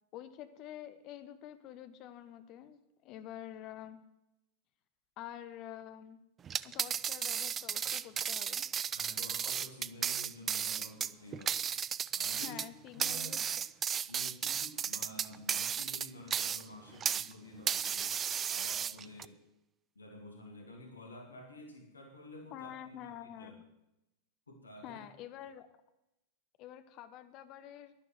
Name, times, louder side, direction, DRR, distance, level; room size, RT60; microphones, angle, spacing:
voice 1, 0.1-4.0 5.2-6.2 6.6-8.6 12.4-13.4 22.5-23.6 24.8-25.7 26.6-27.9, left 11 dB, 40° left, 11 dB, 1.0 m, -48 dB
sound 1, 6.4-17.3 17.7-19.3, right 8 dB, 25° right, 0.4 m, -34 dB
voice 2, 8.9-11.7 12.1-12.6 13.0-13.4 14.1-18.2 18.5-19.4 20.0-23.6 24.5-25.0, left 1 dB, 75° left, 2 dB, 2.5 m, -50 dB
11.5 x 11.5 x 7.8 m, 0.92 s
figure-of-eight pair, 90°, 0 cm